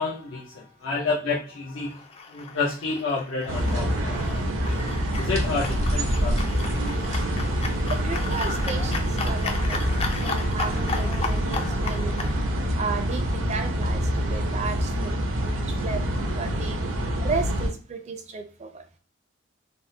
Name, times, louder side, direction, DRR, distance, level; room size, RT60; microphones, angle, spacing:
voice 1, 0.0-2.0 2.3-4.8 5.2-6.5, left 4 dB, 80° left, 0.6 m, -30 dB
sound 1, 1.9-12.3, left 4 dB, 30° left, 0.3 m, -35 dB
sound 2, 3.5-17.7, equal, 85° right, 0.7 m, -26 dB
voice 2, 7.9-12.3 12.8-15.1 15.4-16.0 16.4-16.8 17.2-18.8, right 4 dB, 35° right, 0.4 m, -34 dB
3.5 x 2.0 x 2.6 m
head